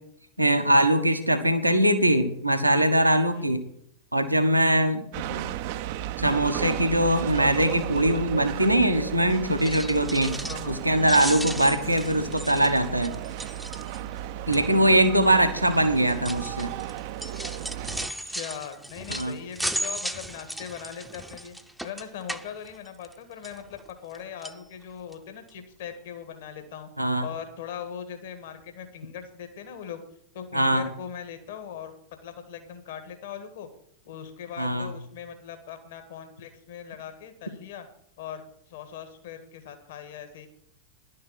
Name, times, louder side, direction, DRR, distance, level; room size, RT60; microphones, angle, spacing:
voice 1, 0.4-3.6 4.1-5.4 6.2-10.3 10.7-13.1 14.5-16.7 19.1-19.3 27.0-27.3 30.5-30.9 34.6-34.9, right 1 dB, 85° right, 7 dB, 1.1 m, -22 dB
sound 1, 5.1-18.1, right 12 dB, 50° right, 0.5 m, -34 dB
sound 2, 9.5-10.8 11.0-14.2 14.5-14.9 15.6-23.1 23.4-24.2 24.4-24.6 25.1-25.2 25.5-25.6, equal, ahead, 0.7 m, -36 dB
voice 2, 10.4-10.8 15.1-15.3 18.0-21.5 21.8-26.9 27.2-30.0 30.3-31.9 32.2-33.7 34.0-37.9 38.2-40.5, left 8 dB, 55° left, 7 dB, 1.7 m, -40 dB
11.0 x 6.7 x 8.5 m, 0.66 s
figure-of-eight pair, 90°, 0 cm